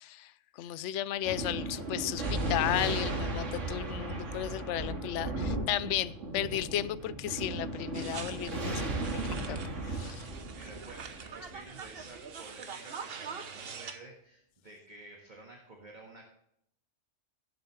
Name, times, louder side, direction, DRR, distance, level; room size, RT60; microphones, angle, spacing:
voice 1, 0.0-9.6 9.8-10.3, left 12 dB, 70° left, 16 dB, 0.9 m, -34 dB
Thunder, 1.2-12.1, right 2 dB, 70° right, 2.3 m, -36 dB
sound 1, 7.9-14.0, right 6 dB, 55° right, 1.1 m, -44 dB
voice 2, 10.6-16.3, right 2 dB, 35° right, -1 dB, 1.8 m, -51 dB
17.5 x 7.8 x 3.2 m, 0.73 s
omnidirectional pair, 1.3 m